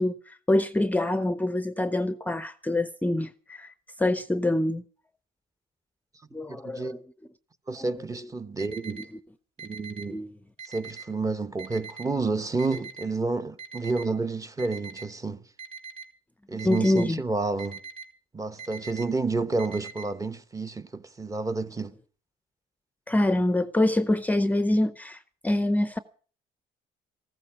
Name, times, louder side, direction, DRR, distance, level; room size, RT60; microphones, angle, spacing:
voice 1, 0.0-3.7 4.0-4.8 6.3-7.0 7.8-7.9 10.1-10.3 16.6-17.2 23.1-26.0, left 1 dB, 10° left, 0.6 m, -25 dB
voice 2, 6.5-7.0 7.7-9.0 9.6-10.2 10.7-15.4 16.5-17.8 18.3-21.9, right 3 dB, 20° right, 1.0 m, -30 dB
Alarm, 8.6-9.0 9.6-10.0 10.6-11.0 11.6-12.0 12.6-13.0 13.6-14.0 14.6-15.0 15.6-16.0 16.6-17.0 17.6-18.1 18.6-19.0 19.6-20.0, right 6 dB, 35° right, 2.7 m, -41 dB
15.0 x 14.0 x 5.8 m
cardioid pair, 110°, 17 cm